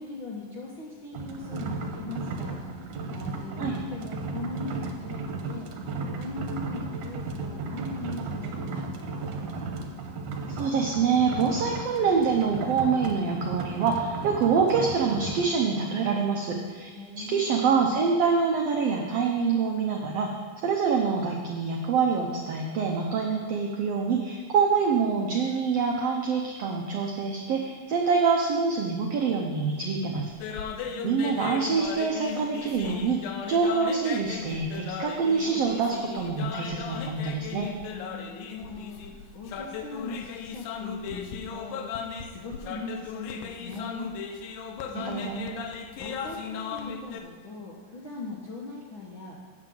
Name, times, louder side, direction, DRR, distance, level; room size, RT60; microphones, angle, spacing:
voice 1, 0.0-5.7 6.1-9.4 17.0-17.6 30.7-31.2 37.9-41.8 42.2-45.4 45.7-49.4, left 3 dB, 70° left, -4 dB, 1.2 m, -40 dB
sound 1, 1.1-15.5, right 3 dB, 70° right, 2.2 m, -35 dB
voice 2, 10.6-16.9 17.2-20.3 20.6-30.5 31.0-37.7 44.9-45.6, right 5 dB, 85° right, 1 dB, 1.4 m, -26 dB
sound 2, 30.3-47.2, left 6 dB, 85° left, 2.5 m, -37 dB
8.7 x 6.1 x 7.6 m, 1.5 s
omnidirectional pair, 3.9 m